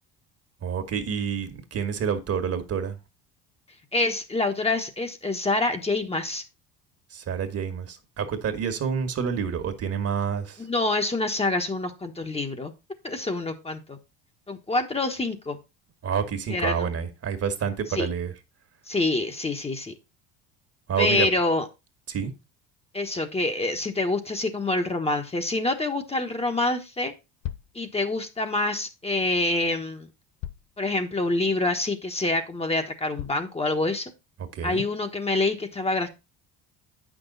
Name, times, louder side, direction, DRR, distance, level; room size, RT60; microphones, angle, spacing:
voice 1, 0.6-3.0 7.1-10.6 16.0-18.3 20.9-21.3 22.1-22.3 34.4-34.8, right 7 dB, 45° right, 1.7 m, -28 dB
voice 2, 3.9-6.4 10.6-12.7 13.0-14.0 14.5-15.6 16.5-16.9 17.9-18.1 18.9-19.9 21.0-21.7 22.9-27.1 27.7-30.1 30.8-34.1 34.6-36.1, left 2 dB, 15° left, 1.3 m, -26 dB
sound 1, 26.9-27.0 27.4-27.8 29.3-29.4 30.4-30.8 31.3-31.4 32.0-32.1 33.2-33.5, left 13 dB, 65° left, 0.7 m, -37 dB
8.7 x 6.2 x 4.0 m
supercardioid pair, 95°, 35 cm